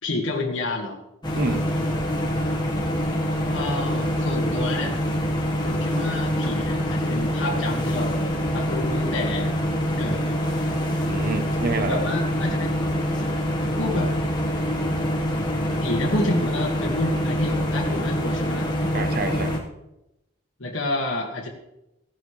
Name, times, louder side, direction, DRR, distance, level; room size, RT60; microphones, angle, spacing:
voice 1, 0.0-1.0 3.5-5.0 5.6-9.5 10.0-10.4 11.9-12.9 13.7-14.1 15.8-18.7 20.6-21.5, left 2 dB, 70° left, -1 dB, 1.7 m, -29 dB
sound 1, 1.2-19.6, equal, 20° left, 1.3 m, -25 dB
voice 2, 1.3-1.7 11.0-12.0 18.9-19.6, right 3 dB, 45° right, 9 dB, 0.8 m, -28 dB
15.5 x 10.5 x 3.2 m, 0.89 s
head